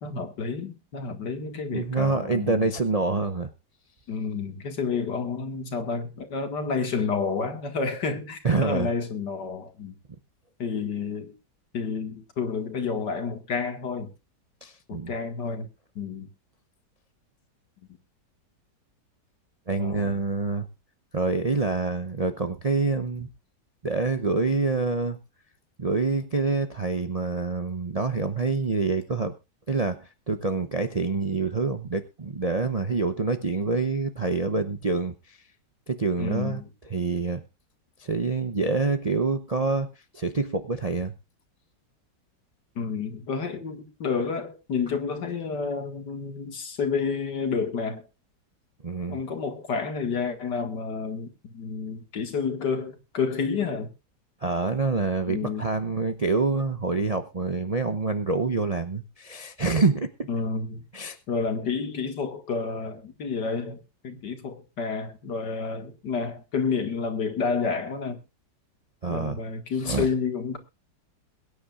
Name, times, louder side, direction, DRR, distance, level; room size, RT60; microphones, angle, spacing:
voice 1, 0.0-2.7 4.1-9.9 10.6-11.3 11.7-14.1 14.9-15.7 16.0-16.3 19.8-20.2 36.2-36.7 42.8-48.1 49.1-53.9 55.3-55.7 60.3-60.8 61.3-68.2 69.1-70.6, left 5 dB, 75° left, 2.5 m, -30 dB
voice 2, 1.7-3.5 8.4-8.9 14.6-15.1 19.7-20.7 21.1-23.3 23.8-25.2 25.8-29.3 29.7-35.4 35.9-36.6 36.9-37.4 38.0-39.9 40.1-41.1 48.8-49.2 54.4-60.3 60.9-61.2 69.0-69.4 69.8-70.1, right 3 dB, 35° right, 0.5 m, -26 dB
22.0 x 10.0 x 2.5 m
omnidirectional pair, 1.9 m